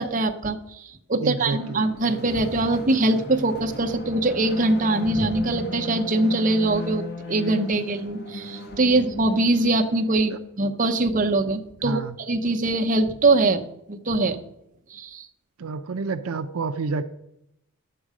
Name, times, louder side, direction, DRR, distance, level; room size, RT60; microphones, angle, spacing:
voice 1, 0.0-14.4 14.9-15.3, right 2 dB, 35° right, 4 dB, 0.8 m, -23 dB
voice 2, 1.2-1.9 10.3-10.4 11.8-12.2 15.6-17.0, right 4 dB, 75° right, 8 dB, 0.5 m, -29 dB
sound 1, 1.5-10.7, left 2 dB, 45° left, 1.5 m, -36 dB
11.0 x 7.9 x 4.9 m, 0.79 s
head